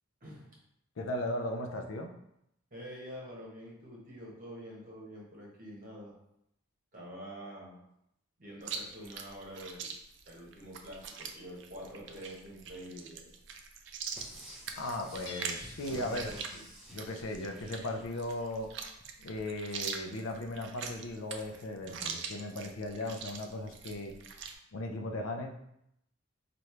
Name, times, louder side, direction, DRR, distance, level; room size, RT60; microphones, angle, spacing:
voice 1, 1.0-2.1 14.8-16.6 16.9-18.7 19.2-24.2 24.7-25.5, left 1 dB, 85° left, 4 dB, 0.5 m, -37 dB
voice 2, 2.7-6.1 6.9-7.8 8.4-9.9 10.3-13.3 15.8-16.4, equal, 40° right, -4 dB, 1.2 m, -46 dB
Chewing mastication, 8.6-24.6, right 6 dB, 60° right, 0.4 m, -43 dB
sound 1, 14.1-18.6 19.0-19.1, equal, 5° right, 0.5 m, -52 dB
Hammer / Chink clink, 15.2-16.0, left 2 dB, 50° left, 1.1 m, -47 dB
3.2 x 2.6 x 4.4 m, 0.77 s
head